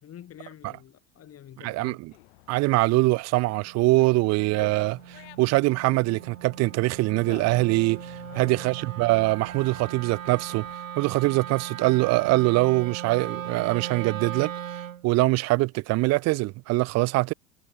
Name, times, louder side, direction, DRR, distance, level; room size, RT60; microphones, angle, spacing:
voice 1, 0.0-2.0 8.3-8.8, left 10 dB, 35° left, 7.7 m, -47 dB
voice 2, 1.6-2.1 2.5-10.7 11.0-14.5 15.0-17.3, right 21 dB, 40° right, 0.8 m, -23 dB
Dog, 2.1-10.8, left 25 dB, 60° left, 5.8 m, -51 dB
Wind instrument woodwind instrument, 3.5-15.0, right 9 dB, 80° right, 1.9 m, -39 dB
figure-of-eight pair, 75°, 39 cm